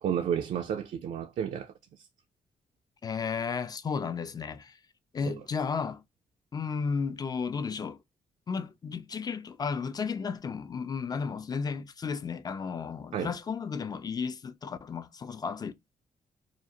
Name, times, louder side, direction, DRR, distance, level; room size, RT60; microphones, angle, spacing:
voice 1, 0.0-1.7 5.3-5.4 13.1-13.3, right 8 dB, 65° right, 0.4 m, -31 dB
voice 2, 3.0-4.8 5.1-6.0 6.5-8.0 8.5-15.7, left 5 dB, 30° left, 0.4 m, -33 dB
2.5 x 2.0 x 2.7 m
cardioid pair, 80°, 13 cm